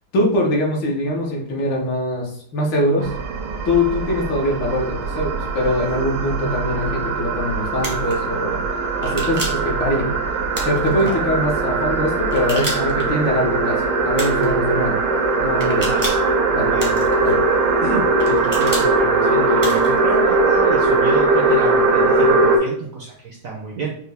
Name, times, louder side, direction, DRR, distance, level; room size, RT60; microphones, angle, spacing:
voice 1, 0.1-3.1 3.6-8.6 9.0-10.4 10.6-14.9 15.4-15.9 16.5-16.7 17.2-17.4, left 1 dB, 70° left, -1 dB, 1.7 m, -22 dB
sound 1, 3.0-22.6, right 3 dB, 85° right, 1.6 m, -20 dB
sound 2, 7.8-8.1 9.0-9.7 10.5-11.1 12.3-13.0 14.1-14.5 15.6-16.3 16.8-17.3 18.2-18.9 19.6-20.0, right 1 dB, 25° right, 0.4 m, -30 dB
voice 2, 16.6-17.1 17.8-23.9, right 4 dB, 70° right, -3 dB, 0.8 m, -29 dB
5.5 x 2.2 x 3.3 m, 0.62 s
omnidirectional pair, 2.2 m